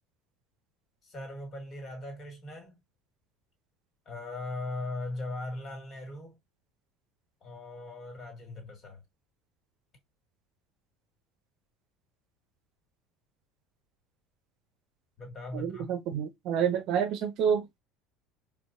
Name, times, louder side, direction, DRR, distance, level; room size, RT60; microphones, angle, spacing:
voice 1, 1.0-2.8 4.1-6.4 7.4-9.0 15.2-15.9, left 2 dB, 35° left, 1.9 m, -39 dB
voice 2, 15.5-17.8, right 8 dB, 55° right, 0.7 m, -29 dB
4.5 x 2.3 x 2.5 m
figure-of-eight pair, 65°, 0 cm